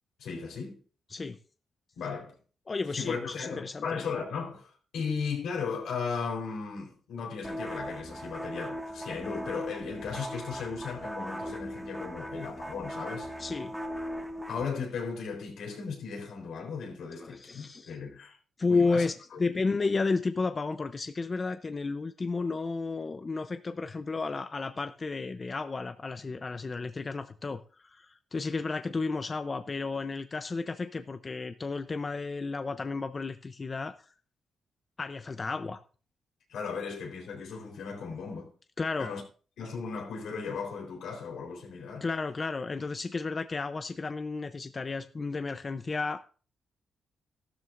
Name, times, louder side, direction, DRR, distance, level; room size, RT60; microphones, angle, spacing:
voice 1, 0.2-0.8 2.0-2.4 2.9-13.3 14.5-18.4 18.7-19.4 36.5-38.5 39.0-39.2 39.6-42.1, left 5 dB, 85° left, 4.0 m, -36 dB
voice 2, 2.7-4.1 13.4-13.7 17.2-17.9 18.6-19.1 19.4-34.0 35.0-35.8 38.8-39.1 42.0-46.2, left 4 dB, 30° left, 0.6 m, -32 dB
sound 1, 7.4-14.7, equal, 5° right, 1.1 m, -38 dB
14.0 x 12.5 x 2.6 m
cardioid pair, 110°, 0 cm